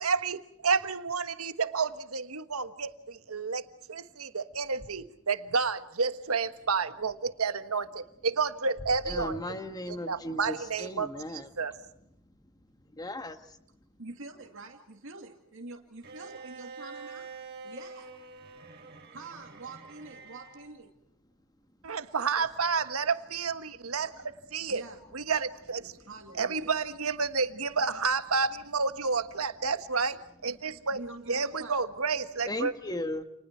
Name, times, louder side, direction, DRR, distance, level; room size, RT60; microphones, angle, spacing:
voice 1, 0.0-3.6 3.9-9.4 9.9-11.7 21.8-24.8 25.1-25.9 26.4-31.0 31.3-32.7, right 5 dB, 80° right, 1.4 m, -30 dB
voice 2, 9.1-11.5 12.9-13.4 32.5-33.2, left 1 dB, 20° left, 1.7 m, -36 dB
voice 3, 14.0-17.3 17.6-18.1 19.1-20.9 24.7-25.0 26.1-26.8 30.9-31.8, right 3 dB, 65° right, 2.3 m, -45 dB
Bowed string instrument, 16.0-20.7, right 4 dB, 50° right, 5.8 m, -46 dB
30.0 x 29.0 x 4.5 m
head